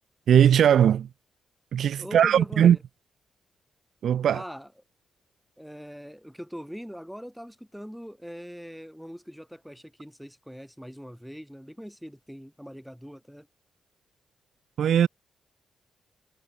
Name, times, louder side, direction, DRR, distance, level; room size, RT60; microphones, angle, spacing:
voice 1, 0.3-1.1 1.7-2.8 4.0-4.4 14.8-15.1, right 9 dB, 70° right, 0.8 m, -19 dB
voice 2, 2.0-2.8 4.3-4.7 5.6-13.5, equal, ahead, 6.0 m, -42 dB
cardioid pair, 115°, 0 cm